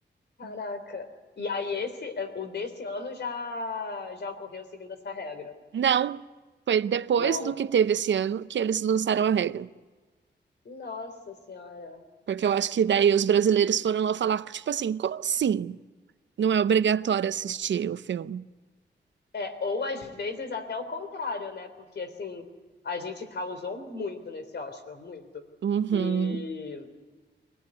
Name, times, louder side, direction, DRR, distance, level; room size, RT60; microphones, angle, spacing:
voice 1, 0.4-1.1 1.4-5.5 7.2-7.5 10.7-12.0 19.3-21.7 22.0-22.4 22.8-25.4 25.9-26.9, left 4 dB, 65° left, 3.5 m, -35 dB
voice 2, 5.7-6.2 6.7-9.7 12.3-15.8 16.4-18.5 25.6-26.4, right 8 dB, 75° right, 0.7 m, -25 dB
24.5 x 18.0 x 9.7 m
wide cardioid pair, 105°, 19 cm